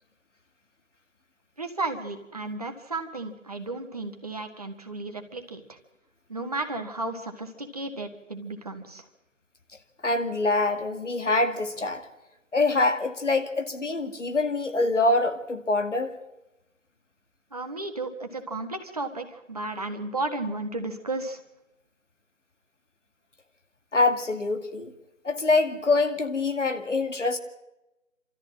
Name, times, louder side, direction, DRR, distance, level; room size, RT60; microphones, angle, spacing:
voice 1, 1.6-5.8 6.3-9.0 17.5-21.4, right 2 dB, 30° right, 5 dB, 1.6 m, -33 dB
voice 2, 10.0-12.0 12.5-16.1 23.9-24.9 25.2-27.4, left 2 dB, 65° left, 7 dB, 2.3 m, -25 dB
27.0 x 13.5 x 7.5 m, 0.96 s
figure-of-eight pair, 170°, 39 cm